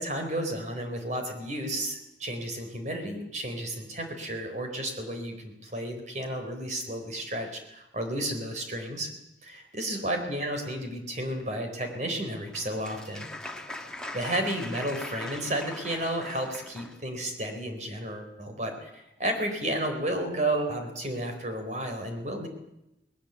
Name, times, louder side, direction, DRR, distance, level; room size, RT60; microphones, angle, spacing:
voice 1, 0.0-9.1 9.4-13.3 14.1-22.5, right 1 dB, 40° right, 4 dB, 4.2 m, -32 dB
Applause, 12.1-17.0, left 2 dB, 5° left, 1.8 m, -41 dB
20.5 x 19.5 x 8.1 m, 0.88 s
head